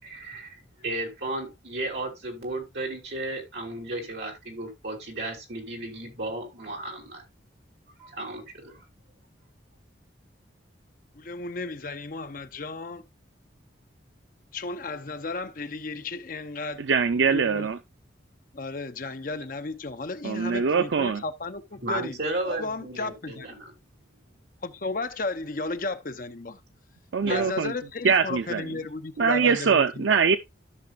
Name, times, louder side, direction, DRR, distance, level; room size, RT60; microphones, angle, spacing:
voice 1, 0.0-7.2 8.0-8.8 21.8-23.7 27.2-27.7, right 2 dB, 65° right, 3.2 m, -34 dB
voice 2, 11.1-13.0 14.5-16.8 17.3-17.7 18.5-22.2 22.4-23.5 24.6-26.6 27.3-30.0, left 3 dB, 45° left, 0.7 m, -34 dB
voice 3, 16.8-17.8 20.2-21.2 27.1-27.7 28.0-28.8 29.2-30.4, right 5 dB, 80° right, 0.5 m, -23 dB
13.5 x 6.0 x 2.5 m
head